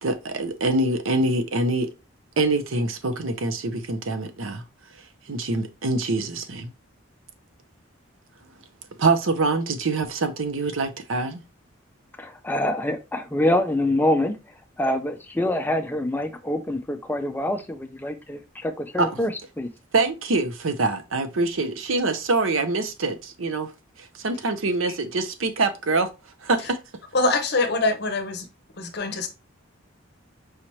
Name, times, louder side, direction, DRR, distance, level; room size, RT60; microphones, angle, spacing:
voice 1, 0.0-1.9 2.4-4.6 5.3-6.7 9.0-11.4 19.0-19.1 19.9-23.7 24.0-26.1 26.4-26.8, right 3 dB, 75° right, 0.7 m, -24 dB
voice 2, 12.2-14.4 14.8-19.7, left 1 dB, 10° left, 0.4 m, -25 dB
voice 3, 27.1-28.5 28.8-29.3, left 2 dB, 55° left, 0.7 m, -24 dB
4.9 x 2.9 x 3.0 m
head